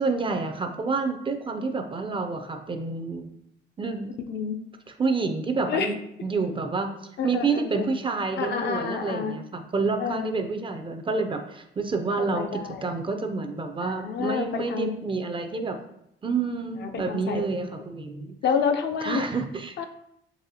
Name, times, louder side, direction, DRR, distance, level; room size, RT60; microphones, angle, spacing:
voice 1, 0.0-3.3 3.8-4.1 5.0-6.0 6.2-6.9 7.2-15.8 16.2-18.3 19.0-19.8, right 4 dB, 25° right, 6 dB, 0.4 m, -28 dB
voice 2, 7.2-7.9 8.4-9.3 10.0-10.3 12.2-12.9 13.8-14.9 16.8-17.8 18.4-19.2 19.8-19.9, left 6 dB, 60° left, 5 dB, 0.5 m, -29 dB
4.0 x 3.0 x 2.7 m, 0.77 s
cardioid pair, 90°, 20 cm